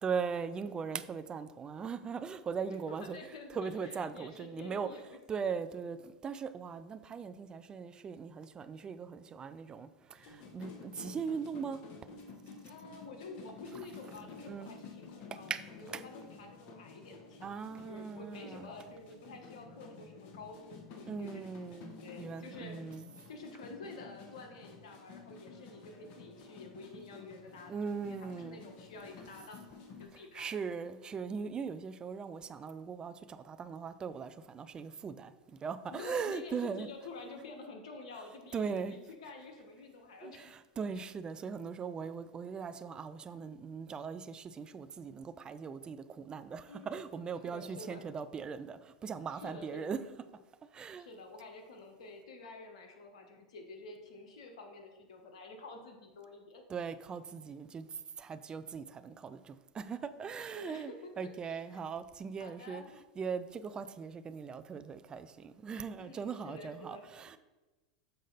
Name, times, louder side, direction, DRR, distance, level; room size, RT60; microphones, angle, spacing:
voice 1, 0.0-3.2 3.5-4.9 5.3-11.8 14.4-14.8 15.3-16.0 17.4-18.7 21.1-23.1 27.7-28.6 30.3-35.3 35.6-36.9 38.5-38.9 40.2-50.0 50.7-51.1 56.7-57.9 58.2-62.8 63.2-67.4, right 6 dB, 25° right, 12 dB, 0.4 m, -39 dB
voice 2, 2.7-5.4 12.7-17.5 17.9-21.5 22.0-23.0 23.3-27.7 28.1-30.5 35.9-40.6 46.7-47.2 47.4-48.1 49.3-50.0 51.0-56.6 60.2-61.8 62.4-62.9 65.9-67.0, left 3 dB, 75° left, 3 dB, 1.3 m, -49 dB
sound 1, 10.2-30.1, left 4 dB, 50° left, 1.2 m, -52 dB
6.7 x 5.0 x 4.0 m, 1.2 s
hypercardioid pair, 100°, 4 cm